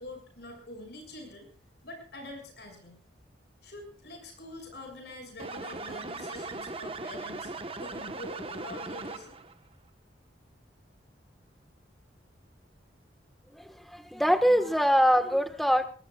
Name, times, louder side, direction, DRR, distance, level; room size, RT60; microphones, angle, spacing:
voice 1, 0.0-1.5 1.8-3.0 3.6-9.4, left 1 dB, 65° left, 4 dB, 6.9 m, -45 dB
sound 1, 5.4-9.5, right 3 dB, 30° right, 1.2 m, -39 dB
voice 2, 13.5-15.8, equal, ahead, 8 dB, 1.4 m, -24 dB
23.5 x 23.5 x 2.4 m, 0.38 s
head